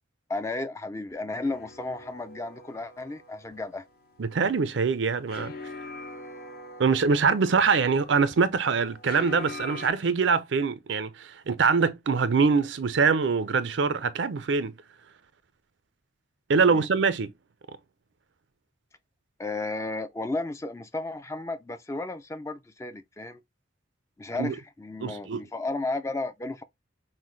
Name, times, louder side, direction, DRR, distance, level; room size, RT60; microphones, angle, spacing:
voice 1, 0.3-3.9 16.7-16.9 19.4-23.4 24.2-26.6, left 2 dB, 15° left, 0.4 m, -33 dB
sound 1, 1.4-9.9, left 2 dB, 55° left, 0.8 m, -43 dB
voice 2, 4.2-5.5 6.8-14.7 16.5-17.3 24.4-24.5 25.0-25.4, right 5 dB, 70° right, 0.5 m, -24 dB
5.6 x 2.2 x 3.1 m
head